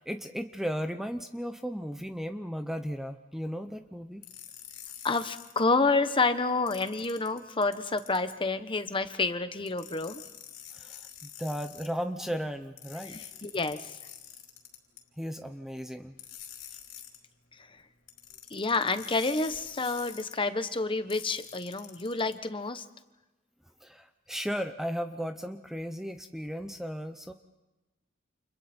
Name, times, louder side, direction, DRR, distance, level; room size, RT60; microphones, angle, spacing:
voice 1, 0.0-4.2 10.7-13.2 15.2-16.2 23.8-27.3, equal, ahead, 7 dB, 0.7 m, -35 dB
sound 1, 4.2-5.6 6.7-8.4 9.7-11.9 12.8-15.0 16.2-17.2 18.1-20.3 21.1-22.3, left 10 dB, 90° left, 4.4 m, -47 dB
voice 2, 5.0-10.2 13.1-14.0 17.6-17.7 18.5-22.8, left 3 dB, 25° left, 10 dB, 1.2 m, -29 dB
30.0 x 28.5 x 4.5 m, 1.1 s
head